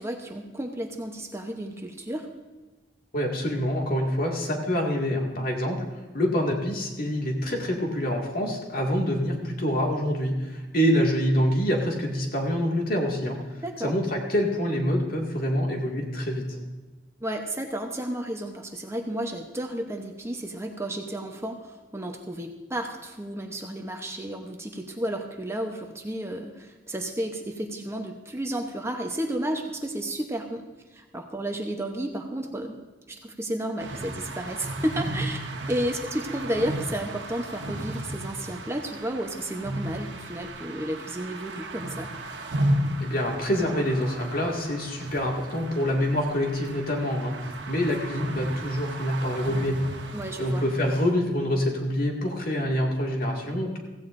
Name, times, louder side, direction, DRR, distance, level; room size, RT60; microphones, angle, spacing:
voice 1, 0.0-2.3 13.6-13.9 17.2-30.6 30.9-32.8 33.1-42.1 50.1-50.7, right 1 dB, 15° right, 3 dB, 0.9 m, -32 dB
voice 2, 3.1-5.8 6.1-16.6 43.0-49.8 50.4-53.8, equal, 55° left, 0 dB, 2.2 m, -26 dB
sound 1, 33.8-51.1, right 1 dB, 70° right, 1.3 m, -34 dB
16.0 x 15.5 x 2.6 m, 1.2 s
head